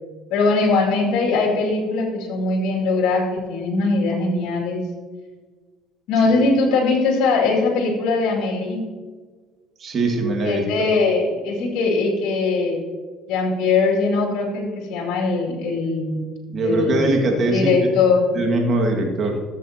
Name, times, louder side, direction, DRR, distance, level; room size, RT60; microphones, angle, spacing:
voice 1, 0.3-4.8 6.1-8.8 10.4-12.8 13.3-16.3 16.6-18.3, left 3 dB, 75° left, -1 dB, 2.4 m, -21 dB
voice 2, 9.8-10.9 16.5-17.8 18.3-19.4, right 2 dB, 40° right, 1 dB, 1.9 m, -21 dB
14.0 x 8.1 x 2.9 m, 1.4 s
cardioid pair, 105°, 0 cm